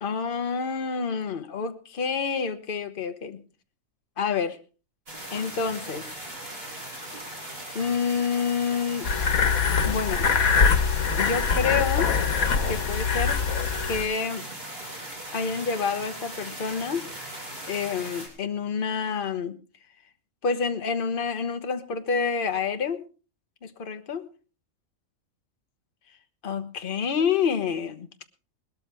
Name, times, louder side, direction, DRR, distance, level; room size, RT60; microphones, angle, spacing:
voice 1, 0.0-3.4 4.2-4.6 5.3-6.1 7.7-9.1 9.8-10.3 11.1-12.1 12.7-13.4 13.8-14.4 15.3-17.0 17.7-19.6 20.4-23.0 23.6-24.3 26.4-28.1, left 6 dB, 40° left, 8 dB, 1.2 m, -28 dB
sound 1, 5.1-18.3, right 1 dB, 45° right, 3.9 m, -39 dB
sound 2, 9.0-14.0, left 5 dB, 85° left, 1.7 m, -23 dB
20.0 x 13.0 x 3.4 m, 0.33 s
omnidirectional pair, 1.5 m